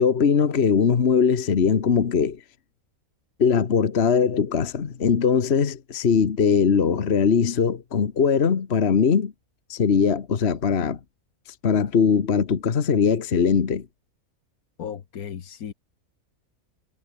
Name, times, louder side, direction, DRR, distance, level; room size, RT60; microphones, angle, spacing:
voice 1, 0.0-2.4 3.4-9.3 9.7-11.0 11.6-13.8, left 6 dB, 45° left, 1.5 m, -21 dB
voice 2, 14.8-15.7, left 8 dB, 80° left, 1.7 m, -35 dB
omnidirectional pair, 1.5 m